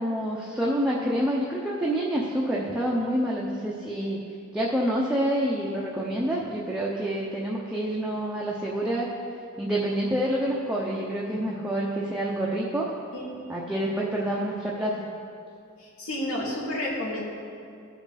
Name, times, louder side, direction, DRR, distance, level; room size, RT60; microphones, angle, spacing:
voice 1, 0.0-4.2 4.5-9.1 9.6-12.9 13.5-15.0, right 1 dB, 5° right, -5 dB, 0.8 m, -27 dB
voice 2, 15.8-17.2, left 1 dB, 85° left, -4 dB, 2.5 m, -31 dB
15.5 x 5.9 x 4.2 m, 2.4 s
head